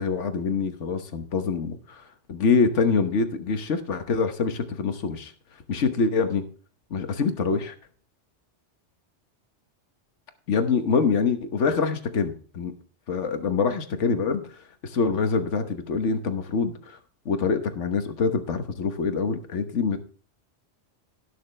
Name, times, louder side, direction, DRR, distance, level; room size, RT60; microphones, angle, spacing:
voice 1, 0.0-2.0 2.3-5.3 5.7-6.4 6.9-7.7 10.5-12.7 13.1-17.0 17.2-20.0, left 5 dB, 80° left, 8 dB, 1.5 m, -25 dB
18.0 x 6.5 x 3.3 m, 0.44 s
omnidirectional pair, 1.2 m